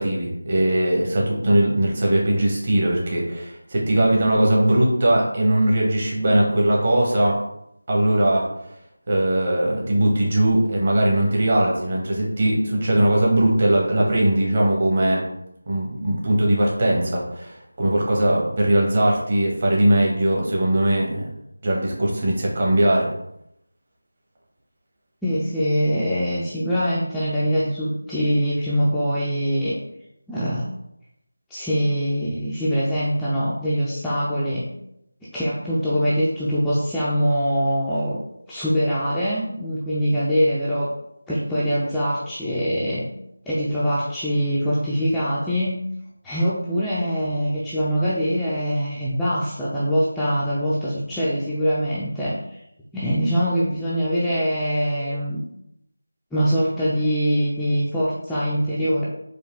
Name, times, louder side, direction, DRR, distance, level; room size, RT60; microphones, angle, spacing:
voice 1, 0.0-7.4 7.9-8.5 9.1-15.3 15.7-21.3 21.6-23.1, right 1 dB, 35° right, -3 dB, 1.0 m, -20 dB
voice 2, 25.2-29.8 30.3-30.7 31.5-34.7 35.3-38.2 38.5-40.9 41.3-43.1 43.5-45.8 46.2-52.4 52.9-55.4 56.3-59.0, equal, 5° left, -11 dB, 0.4 m, -23 dB
4.6 x 2.4 x 3.4 m, 0.79 s
figure-of-eight pair, 165°, 0 cm